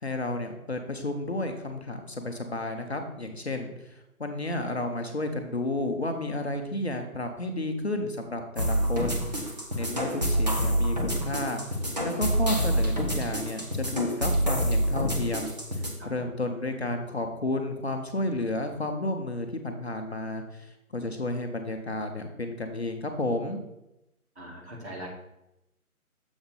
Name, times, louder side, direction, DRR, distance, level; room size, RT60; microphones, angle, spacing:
voice 1, 0.0-11.6 12.0-23.6, left 2 dB, 45° left, 4 dB, 0.7 m, -32 dB
sound 1, 8.6-15.9, equal, 30° right, 0.8 m, -27 dB
voice 2, 24.4-25.1, right 1 dB, 45° right, -3 dB, 1.9 m, -40 dB
7.1 x 3.5 x 5.5 m, 0.89 s
figure-of-eight pair, 160°, 44 cm